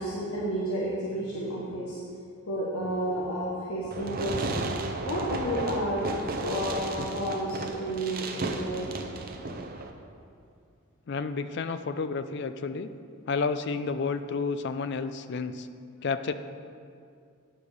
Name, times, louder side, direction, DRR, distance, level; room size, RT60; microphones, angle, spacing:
voice 1, 0.0-2.0 2.5-6.0 6.4-8.9, equal, 75° left, -6 dB, 1.3 m, -31 dB
Fireworks, 3.9-9.9, right 2 dB, 40° right, 0.6 m, -34 dB
voice 2, 11.1-12.9 13.3-15.7 16.0-16.3, left 4 dB, 50° left, 11 dB, 0.4 m, -30 dB
9.0 x 5.2 x 6.5 m, 2.4 s
head